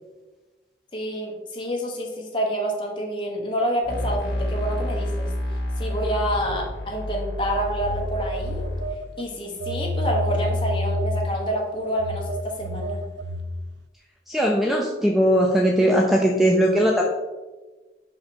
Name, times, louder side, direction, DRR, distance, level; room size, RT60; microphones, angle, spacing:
voice 1, 0.9-5.3 5.8-8.7 9.2-13.0, equal, 30° left, -1 dB, 1.2 m, -28 dB
sound 1, 3.8-8.9, left 1 dB, 70° left, 1.8 m, -29 dB
Telephone, 7.4-9.2 9.6-13.7, left 1 dB, 80° right, 0.4 m, -29 dB
voice 2, 14.3-17.0, equal, ahead, 0 dB, 0.5 m, -19 dB
5.7 x 5.2 x 4.4 m, 1.2 s
head